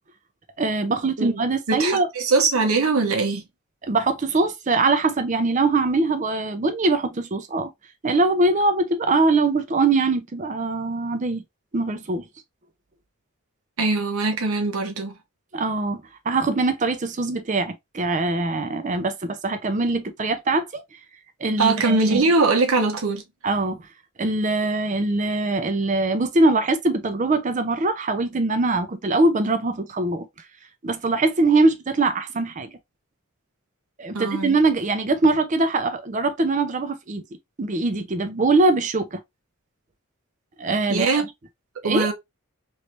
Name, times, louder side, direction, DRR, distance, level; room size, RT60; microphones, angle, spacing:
voice 1, 0.6-2.1 3.9-7.7 8.0-11.4 11.7-12.3 15.5-20.8 21.4-22.2 23.4-23.8 24.2-30.3 30.8-32.7 34.0-37.2 37.6-39.2 40.6-41.1 41.8-42.1, right 3 dB, 35° right, 0.5 m, -22 dB
voice 2, 1.7-3.4 13.8-15.2 21.6-23.2 34.1-34.6 40.9-41.3 41.8-42.1, right 3 dB, 75° right, 0.9 m, -21 dB
3.2 x 3.0 x 2.6 m
head